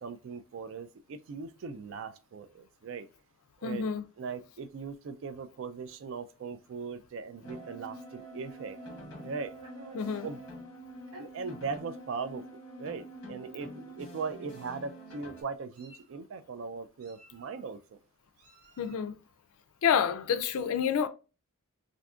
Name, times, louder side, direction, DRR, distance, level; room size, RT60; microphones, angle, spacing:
voice 1, 0.0-3.1 3.6-3.9 4.2-8.8 9.2-9.5 10.2-10.4 11.2-12.4 12.8-18.0, right 5 dB, 60° right, 0.3 m, -39 dB
voice 2, 3.6-4.0 9.9-10.3 18.8-19.1 19.8-21.1, left 7 dB, 75° left, 0.4 m, -28 dB
sound 1, 7.4-15.4, right 1 dB, 55° left, 0.9 m, -46 dB
Meow, 8.7-10.4 11.1-11.3 12.1-12.2 12.6-12.8 13.8-14.0 14.3-14.8 15.4-16.2 17.0-17.7 18.4-19.1, right 2 dB, 85° right, 0.9 m, -54 dB
3.6 x 2.6 x 2.3 m
head